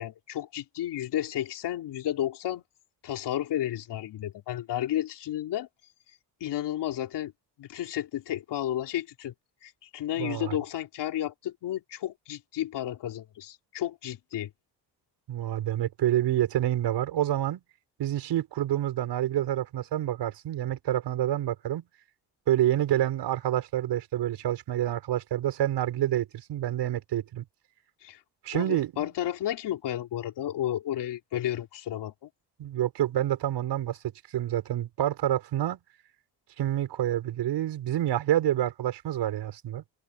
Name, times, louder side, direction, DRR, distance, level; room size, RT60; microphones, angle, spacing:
voice 1, 0.0-2.6 3.0-5.7 6.4-7.3 7.6-9.3 9.6-14.5 28.0-28.2 28.5-32.3, left 12 dB, 80° left, 3.9 m, -32 dB
voice 2, 10.2-10.6 15.3-17.6 18.0-21.8 22.5-27.4 28.4-29.1 32.6-34.0 34.3-35.8 36.6-39.8, right 12 dB, 80° right, 6.1 m, -28 dB
cardioid pair, 135°, 40 cm